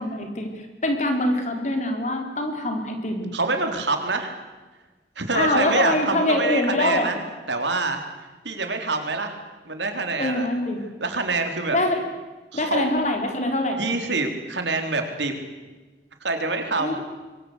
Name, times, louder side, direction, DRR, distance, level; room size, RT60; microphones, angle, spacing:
voice 1, 0.0-3.4 5.3-7.1 10.2-10.8 11.7-12.0 12.5-13.8 16.8-17.0, left 1 dB, 40° left, 4 dB, 4.4 m, -24 dB
voice 2, 3.3-4.4 5.2-7.2 7.5-8.0 8.4-9.4 9.7-10.5 11.0-11.8 12.5-12.9 13.8-15.3 16.2-17.0, right 3 dB, 85° right, 5 dB, 4.0 m, -25 dB
26.5 x 22.5 x 8.3 m, 1.2 s
head